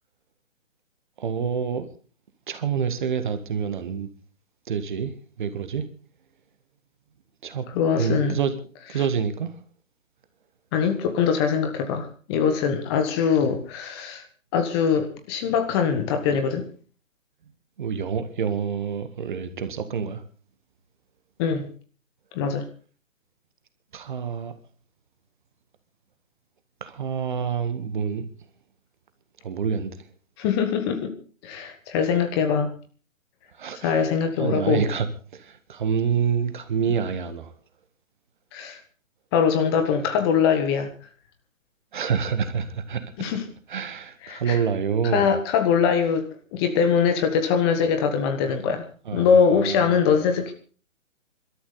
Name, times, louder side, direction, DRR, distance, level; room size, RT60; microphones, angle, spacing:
voice 1, 1.2-1.9 2.5-4.1 4.7-5.1 5.4-5.8 7.4-7.7 8.0-8.5 8.9-9.5 13.4-13.5 17.8-20.2 23.9-24.5 26.8-28.3 29.4-29.9 33.6-34.0 34.4-35.1 35.3-37.5 41.9-43.0 43.7-45.3 49.1-50.0, right 7 dB, 40° right, 1.7 m, -27 dB
voice 2, 7.7-8.4 10.7-14.2 14.5-16.7 21.4-21.7 22.3-22.6 30.4-31.1 31.4-32.7 33.8-34.8 38.5-38.8 39.3-40.9 43.2-43.4 44.2-44.6 45.1-48.9 49.1-50.5, left 6 dB, 20° left, 1.6 m, -22 dB
25.0 x 13.0 x 4.0 m
figure-of-eight pair, 135°, 39 cm